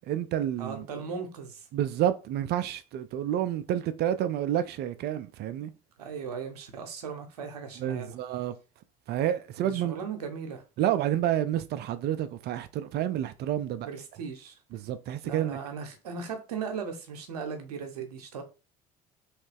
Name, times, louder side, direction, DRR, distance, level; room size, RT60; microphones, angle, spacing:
voice 1, 0.1-0.8 1.7-5.7 7.8-8.5 9.1-10.0 10.8-13.9 14.7-15.6, right 11 dB, 55° right, 0.5 m, -29 dB
voice 2, 0.6-1.7 6.0-8.2 9.6-10.6 13.8-14.6 15.2-18.4, right 6 dB, 90° right, 0.8 m, -38 dB
3.2 x 3.1 x 3.4 m
hypercardioid pair, 65°, 20 cm